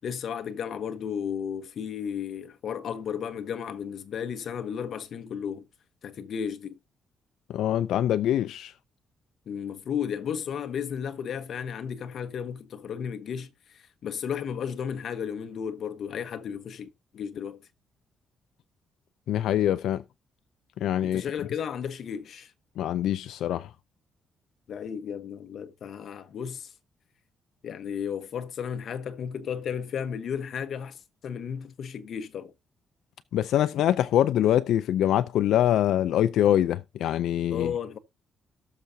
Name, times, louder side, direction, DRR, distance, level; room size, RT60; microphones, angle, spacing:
voice 1, 0.0-5.7 6.0-6.8 9.5-16.9 17.1-17.7 21.0-22.5 24.7-26.7 27.6-32.5 37.5-38.0, left 7 dB, 55° left, 1.1 m, -34 dB
voice 2, 7.5-8.7 19.3-20.0 20.8-21.2 22.8-23.7 33.3-37.7, left 11 dB, 85° left, 0.4 m, -24 dB
18.0 x 6.8 x 2.7 m
cardioid pair, 145°, 0 cm